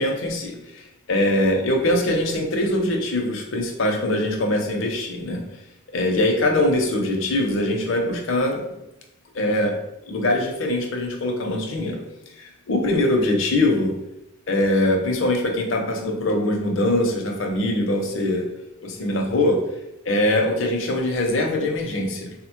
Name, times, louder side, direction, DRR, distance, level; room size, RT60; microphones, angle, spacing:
voice 1, 0.0-5.5 5.9-8.7 9.3-9.7 10.1-12.0 12.4-13.9 14.5-18.4 18.8-19.6 20.1-22.3, left 1 dB, 60° left, 2 dB, 0.6 m, -22 dB
3.9 x 2.1 x 2.9 m, 0.90 s
head